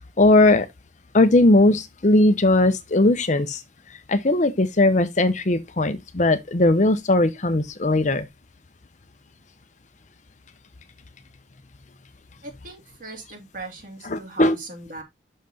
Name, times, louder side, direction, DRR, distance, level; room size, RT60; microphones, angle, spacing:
voice 1, 0.2-0.7 1.1-3.6 4.1-8.3 14.0-14.6, left 2 dB, 45° left, 0.8 m, -18 dB
voice 2, 12.4-15.0, right 2 dB, 50° right, 3.0 m, -38 dB
6.5 x 5.8 x 4.2 m
head